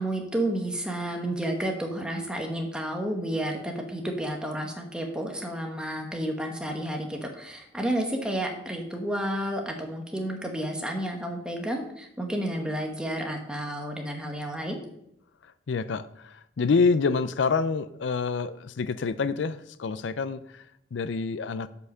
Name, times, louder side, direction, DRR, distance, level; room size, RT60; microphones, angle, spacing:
voice 1, 0.0-14.8, right 1 dB, 5° right, 1 dB, 1.4 m, -31 dB
voice 2, 15.7-20.6 20.9-21.7, left 4 dB, 85° left, 15 dB, 0.5 m, -27 dB
7.9 x 5.7 x 6.5 m, 0.76 s
head